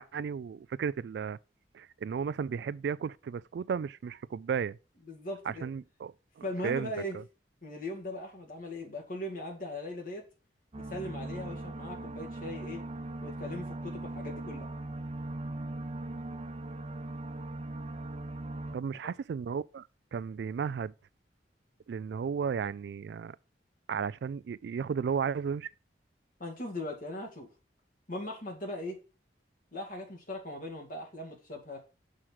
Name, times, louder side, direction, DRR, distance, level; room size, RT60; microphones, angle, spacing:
voice 1, 0.0-1.4 1.7-4.8 5.5-7.2 18.7-20.9 21.9-23.4 23.9-25.7, right 6 dB, 70° right, 0.3 m, -34 dB
voice 2, 5.1-5.7 6.4-7.2 7.6-10.2 10.8-12.8 13.2-14.7 26.4-27.5 28.1-29.0 29.7-31.8, left 1 dB, 50° left, 2.2 m, -39 dB
sound 1, 10.7-18.8, right 2 dB, 35° right, 0.6 m, -39 dB
6.3 x 4.6 x 5.6 m
head